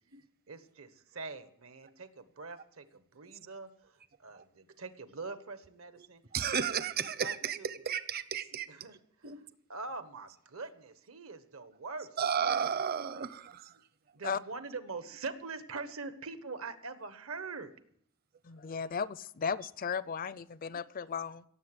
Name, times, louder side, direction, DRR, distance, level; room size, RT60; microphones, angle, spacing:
voice 1, 0.5-6.2 6.7-6.8 7.2-7.7 8.7-8.9 9.7-12.2 14.1-17.7 18.5-18.6, right 4 dB, 75° right, 1.3 m, -43 dB
voice 2, 6.0-8.8 9.2-9.4 12.2-13.9, right 7 dB, 45° right, 0.8 m, -34 dB
voice 3, 18.4-21.4, left 6 dB, 40° left, 0.4 m, -35 dB
17.0 x 7.6 x 8.0 m
head